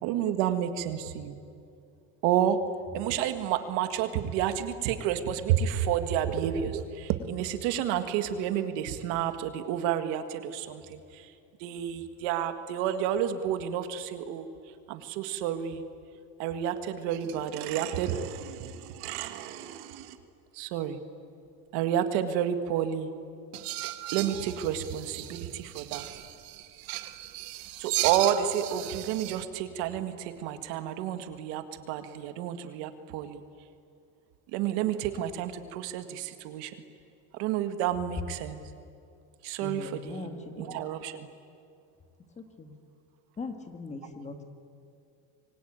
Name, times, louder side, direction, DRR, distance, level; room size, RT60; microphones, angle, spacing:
voice 1, 0.0-1.4 2.2-2.6 2.9-11.3 11.6-14.5 14.9-15.8 16.4-20.2 20.5-21.0 21.7-23.1 24.1-26.1 27.8-33.4 34.5-36.8 37.3-38.6 39.4-41.3, right 10 dB, 80° right, 9 dB, 2.0 m, -30 dB
sound 1, 17.1-17.5 17.7-17.9 23.5-29.5, right 16 dB, 60° right, 1.4 m, -36 dB
voice 2, 39.6-40.8 42.4-42.8 43.4-44.4, left 3 dB, 15° left, 7 dB, 1.8 m, -40 dB
26.0 x 23.5 x 9.0 m, 2.5 s
cardioid pair, 170°, 40 cm